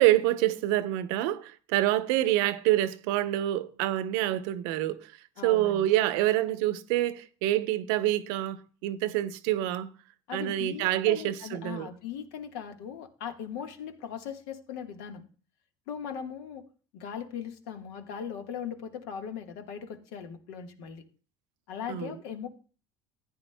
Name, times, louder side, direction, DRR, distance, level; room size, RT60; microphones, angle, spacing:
voice 1, 0.0-5.1 5.4-9.9 10.3-11.9 21.9-22.1, right 14 dB, 80° right, 0.8 m, -26 dB
voice 2, 5.4-5.8 10.3-15.2 15.9-16.6 16.9-21.0 21.7-22.5, left 8 dB, 80° left, 1.5 m, -39 dB
14.5 x 9.8 x 2.2 m
supercardioid pair, 90°, 12 cm